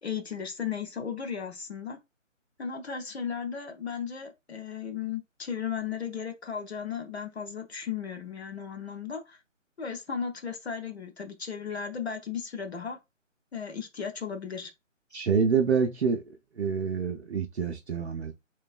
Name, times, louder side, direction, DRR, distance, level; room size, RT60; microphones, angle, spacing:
voice 1, 0.0-2.0 2.6-9.4 9.8-13.0 13.5-14.7, left 7 dB, 55° left, 0.7 m, -35 dB
voice 2, 15.1-16.2 16.6-18.3, right 6 dB, 60° right, 0.5 m, -27 dB
3.2 x 3.1 x 2.4 m
figure-of-eight pair, 145°, 39 cm